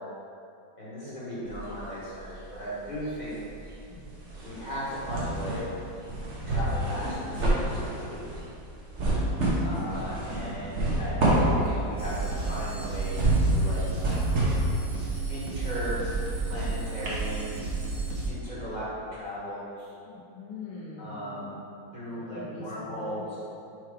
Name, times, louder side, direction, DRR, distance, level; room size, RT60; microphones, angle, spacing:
voice 1, 0.8-3.4 4.4-5.7 6.4-8.3 9.6-13.8 15.3-16.0 16.4-17.5 18.3-19.9 21.0-21.6 21.9-23.4, equal, 25° left, -8 dB, 1.2 m, -37 dB
sound 1, 1.5-2.6 2.9-16.7 17.1-17.2, right 1 dB, 45° right, 1.2 m, -28 dB
voice 2, 3.9-4.3 9.6-10.0 20.1-21.6 22.1-23.3, left 3 dB, 75° left, -5 dB, 1.5 m, -43 dB
sound 2, 12.0-18.3, right 3 dB, 70° right, 1.7 m, -32 dB
4.7 x 4.4 x 4.9 m, 2.6 s
omnidirectional pair, 2.1 m